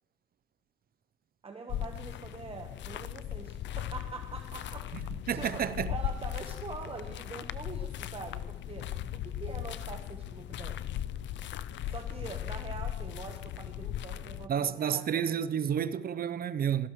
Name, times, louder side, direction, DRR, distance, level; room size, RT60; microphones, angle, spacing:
voice 1, 1.4-4.9 5.3-5.6 5.9-10.8 11.9-15.0, right 4 dB, 30° right, 1.1 m, -44 dB
sound 1, 1.7-14.5, left 11 dB, 65° left, 0.5 m, -38 dB
voice 2, 5.3-5.9 14.5-16.9, right 8 dB, 50° right, 0.6 m, -30 dB
17.0 x 13.5 x 3.1 m
cardioid pair, 90°, 20 cm